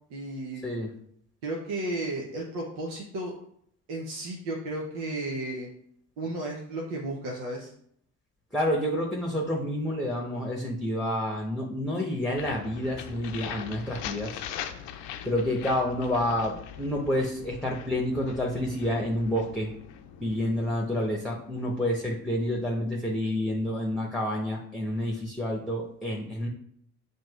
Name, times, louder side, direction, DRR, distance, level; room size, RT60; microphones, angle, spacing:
voice 1, 0.1-0.7 1.4-3.3 3.9-5.7 6.2-7.7, right 2 dB, 75° right, -1 dB, 0.9 m, -33 dB
voice 2, 8.5-14.3 15.2-19.7 20.2-26.5, left 1 dB, ahead, -1 dB, 1.0 m, -29 dB
sound 1, 12.4-22.2, left 9 dB, 60° left, 0.6 m, -42 dB
7.4 x 2.7 x 2.4 m, 0.67 s
hypercardioid pair, 45°, 48 cm